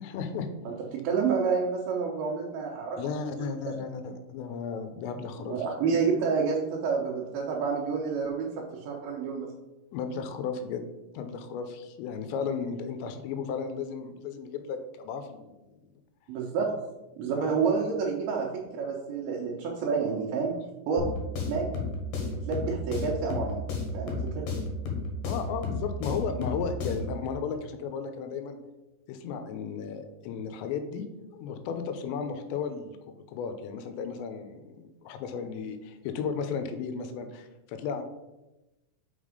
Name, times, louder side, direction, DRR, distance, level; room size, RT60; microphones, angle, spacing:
voice 1, 0.0-0.5 3.0-5.5 9.9-10.8 11.1-15.5 17.4-17.8 25.2-28.6 29.1-31.1 31.3-33.0 33.3-38.0, left 6 dB, 90° left, 8 dB, 3.0 m, -34 dB
voice 2, 0.7-3.0 3.6-3.7 5.4-9.5 16.3-16.7 17.2-18.5 18.7-20.5 20.9-21.1 21.5-21.7 22.5-23.6 23.9-24.4, right 5 dB, 70° right, -4 dB, 2.4 m, -29 dB
sound 1, 21.0-27.2, left 2 dB, 60° left, 2.6 m, -33 dB
6.0 x 5.4 x 4.9 m, 1.0 s
omnidirectional pair, 4.9 m